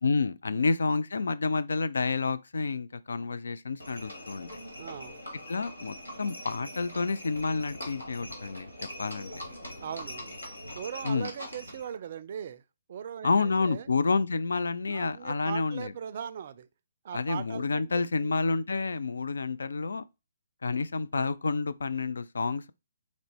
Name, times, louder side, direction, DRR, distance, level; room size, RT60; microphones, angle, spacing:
voice 1, 0.0-4.5 5.5-8.7 9.0-9.3 11.0-11.3 13.2-15.9 17.1-20.0 20.6-22.7, left 4 dB, 75° left, 0.3 m, -29 dB
Livestock farm animals working animals, 3.8-11.9, left 1 dB, 90° left, 1.5 m, -42 dB
voice 2, 4.8-5.2 9.8-10.3 10.8-12.6 12.9-13.9 14.9-16.7 17.0-18.3, right 8 dB, 50° right, 0.4 m, -39 dB
4.0 x 2.1 x 4.4 m
figure-of-eight pair, 140°, 0 cm